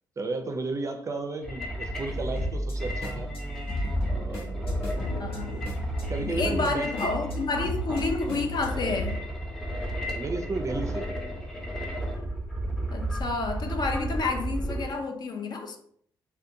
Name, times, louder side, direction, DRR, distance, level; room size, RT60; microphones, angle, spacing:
voice 1, 0.2-3.3 4.1-4.9 5.5-5.6 6.1-6.9 7.9-8.0 10.1-11.1, right 3 dB, 30° right, 0.4 m, -33 dB
sound 1, 1.4-14.9, right 1 dB, 5° left, 0.7 m, -34 dB
sound 2, 2.1-9.1, left 1 dB, 65° left, 0.9 m, -33 dB
voice 2, 5.2-5.9 6.2-9.2 12.9-15.8, left 3 dB, 45° left, 0.4 m, -30 dB
2.5 x 2.2 x 2.6 m
hypercardioid pair, 50°, 10 cm